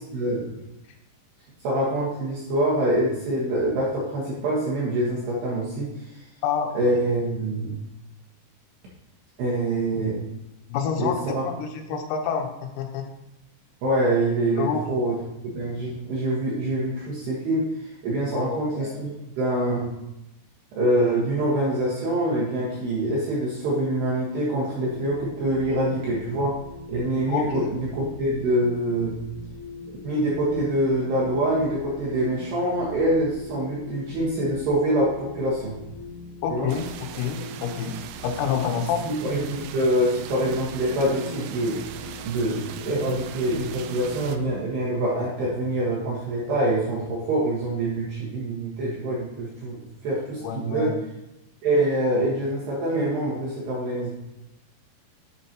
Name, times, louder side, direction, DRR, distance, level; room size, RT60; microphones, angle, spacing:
voice 1, 0.1-0.6 1.6-6.3 6.7-7.8 9.4-10.2 11.0-11.4 11.9-12.0 13.8-15.2 15.5-19.9 20.7-26.6 26.9-29.2 30.0-35.7 36.5-36.7 39.0-41.8 42.2-49.8 50.0-50.9 51.6-54.1, right 1 dB, 65° right, -6 dB, 3.1 m, -25 dB
voice 2, 6.4-6.8 10.7-13.1 14.6-14.8 18.3-19.0 27.3-27.7 36.4-38.0 38.2-39.1 50.4-51.0, left 6 dB, 90° left, 4 dB, 3.8 m, -28 dB
sound 1, 24.7-44.5, left 4 dB, 60° left, 4.8 m, -41 dB
sound 2, 36.7-44.4, right 9 dB, 80° right, 2.9 m, -39 dB
11.5 x 7.7 x 2.9 m, 0.91 s
omnidirectional pair, 6.0 m